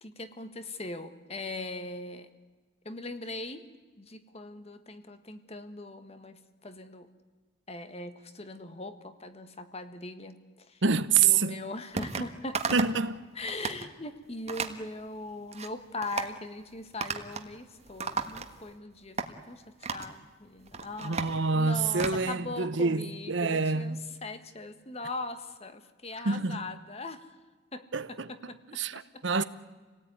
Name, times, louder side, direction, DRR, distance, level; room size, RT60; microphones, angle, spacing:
voice 1, 0.0-2.3 2.8-3.7 4.0-7.1 7.7-10.8 11.2-12.6 13.3-27.4 27.7-29.1 29.4-29.5, left 2 dB, 30° left, 1.5 m, -40 dB
voice 2, 10.8-11.6 12.7-13.2 21.0-24.0 26.2-26.6 27.9-29.4, right 5 dB, 60° right, 0.9 m, -27 dB
sound 1, 12.0-12.3 12.5-13.0 13.4-13.8 14.5-14.8 15.3-15.7 16.0-16.3 17.0-17.5 17.8-18.7 19.2-19.3 19.8-20.1 20.6-22.2, right 4 dB, 30° right, 1.5 m, -34 dB
28.0 x 18.0 x 9.6 m
head